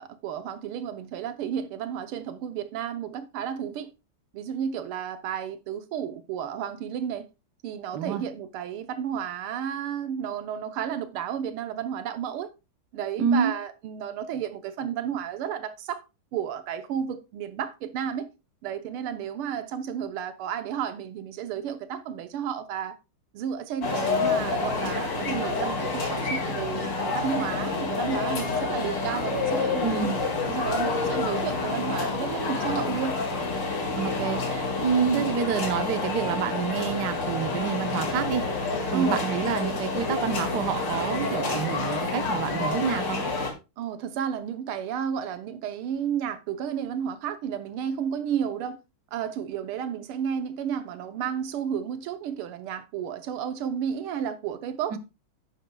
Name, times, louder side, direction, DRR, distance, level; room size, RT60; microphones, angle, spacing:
voice 1, 0.0-3.9 4.3-7.3 7.6-12.5 12.9-16.0 16.3-18.3 18.6-23.0 23.3-30.1 30.5-33.2 35.0-35.3 38.9-39.3 43.8-48.8 49.1-55.0, right 8 dB, 85° right, 1.8 m, -32 dB
voice 2, 13.2-13.5 29.8-30.2 33.9-38.4 38.9-43.2 54.9-55.0, right 7 dB, 60° right, 1.3 m, -28 dB
sound 1, 23.8-43.5, left 3 dB, 55° left, 2.7 m, -28 dB
10.5 x 9.6 x 2.3 m
omnidirectional pair, 2.3 m